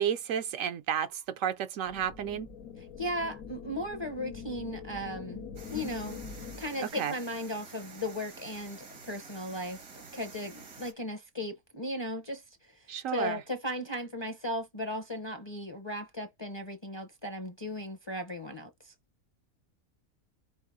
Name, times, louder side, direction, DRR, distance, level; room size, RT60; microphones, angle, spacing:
voice 1, 0.0-2.5 6.8-7.1 12.9-13.4, right 9 dB, 70° right, 0.9 m, -32 dB
sound 1, 1.9-6.9, left 6 dB, 80° left, 1.4 m, -44 dB
voice 2, 2.8-6.2 6.6-18.9, left 1 dB, 25° left, 0.6 m, -37 dB
sound 2, 5.6-10.9, right 4 dB, 90° right, 2.2 m, -49 dB
5.4 x 2.0 x 4.8 m
omnidirectional pair, 1.5 m